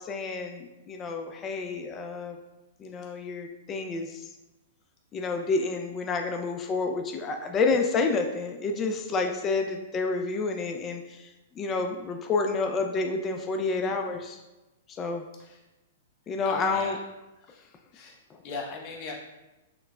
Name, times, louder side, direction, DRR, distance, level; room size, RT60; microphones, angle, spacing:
voice 1, 0.0-2.4 2.8-4.3 5.1-11.3 11.6-14.4 15.0-15.2 16.3-17.0, left 4 dB, 25° left, 4 dB, 0.3 m, -29 dB
voice 2, 16.4-17.0 17.5-17.7 17.9-18.2 18.4-19.1, left 4 dB, 40° left, -1 dB, 0.9 m, -39 dB
5.8 x 2.0 x 2.2 m, 1.0 s
hypercardioid pair, 130°, 0 cm